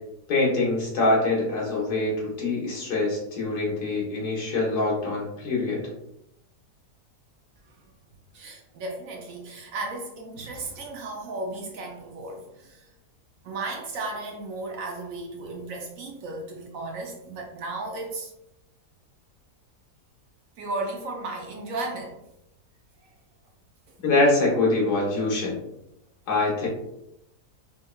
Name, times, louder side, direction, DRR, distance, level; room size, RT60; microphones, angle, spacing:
voice 1, 0.3-5.9 24.0-25.6 26.3-26.7, left 2 dB, 75° left, -4 dB, 1.7 m, -24 dB
voice 2, 8.3-12.9 13.4-18.3 20.6-22.2, right 2 dB, 70° right, 2 dB, 0.9 m, -35 dB
4.5 x 3.0 x 2.2 m, 0.86 s
omnidirectional pair, 1.7 m